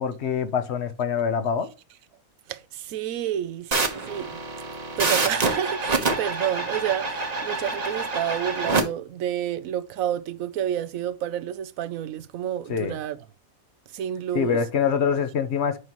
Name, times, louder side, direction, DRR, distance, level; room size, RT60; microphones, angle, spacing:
voice 1, 0.0-1.7 12.7-12.9 14.3-15.8, left 6 dB, 55° left, 1.0 m, -25 dB
voice 2, 2.5-4.4 5.0-13.2 13.9-14.6, right 11 dB, 75° right, 1.0 m, -29 dB
sound 1, 3.7-8.8, right 3 dB, 30° right, 1.1 m, -26 dB
8.1 x 5.5 x 3.0 m
omnidirectional pair, 1.5 m